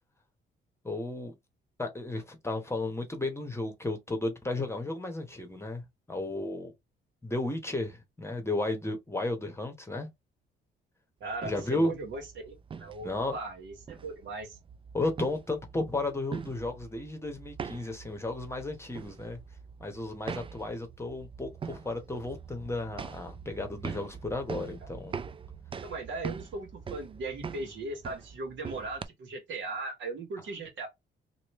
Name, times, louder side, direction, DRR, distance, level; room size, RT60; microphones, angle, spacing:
voice 1, 0.8-1.4 1.8-6.7 7.2-10.1 11.4-11.9 13.0-13.4 14.9-19.4 19.8-25.2, left 2 dB, 15° left, 1.0 m, -33 dB
voice 2, 11.2-14.6 24.5-24.7 25.8-30.9, right 3 dB, 70° right, 1.5 m, -38 dB
sound 1, 11.3-29.0, right 6 dB, 25° right, 0.3 m, -43 dB
3.1 x 2.6 x 3.0 m
cardioid pair, 90°, 20 cm